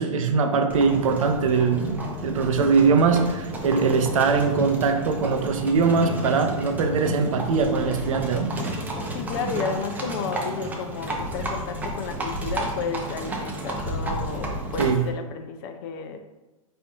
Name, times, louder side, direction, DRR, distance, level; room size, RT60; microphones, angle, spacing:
voice 1, 0.0-8.5 14.8-15.1, right 5 dB, 70° right, 5 dB, 0.6 m, -22 dB
Livestock farm animals working animals, 0.7-15.1, right 1 dB, 10° right, 0.5 m, -31 dB
voice 2, 9.1-16.2, left 5 dB, 40° left, 7 dB, 0.4 m, -32 dB
4.4 x 2.6 x 3.5 m, 1.1 s
hypercardioid pair, 125°, 18 cm